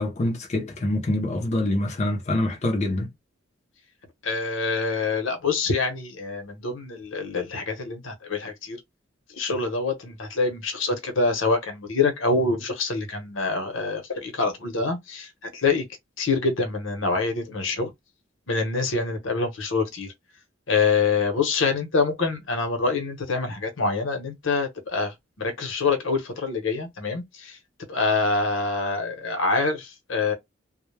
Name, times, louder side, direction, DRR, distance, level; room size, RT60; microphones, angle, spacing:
voice 1, 0.0-3.1, left 1 dB, 35° left, 0.5 m, -25 dB
voice 2, 4.2-8.8 9.4-15.8 16.2-17.9 18.5-20.1 20.7-27.6 27.9-30.3, left 4 dB, 85° left, 0.8 m, -25 dB
2.2 x 2.0 x 3.1 m
head